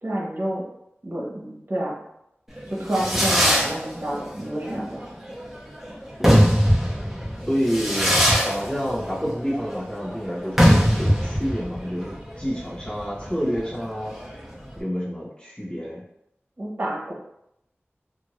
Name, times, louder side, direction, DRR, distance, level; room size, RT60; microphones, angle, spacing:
voice 1, 0.0-0.6 1.0-2.0 2.7-5.0 16.6-17.1, right 1 dB, 50° right, -4 dB, 1.0 m, -29 dB
Fireworks, 2.6-14.8, equal, 5° right, 0.8 m, -22 dB
voice 2, 6.2-6.5 7.5-8.1 8.4-10.7 11.0-14.1 14.8-16.0, equal, 20° left, -9 dB, 1.3 m, -28 dB
2.6 x 2.5 x 3.1 m, 0.80 s
wide cardioid pair, 55°, 4 cm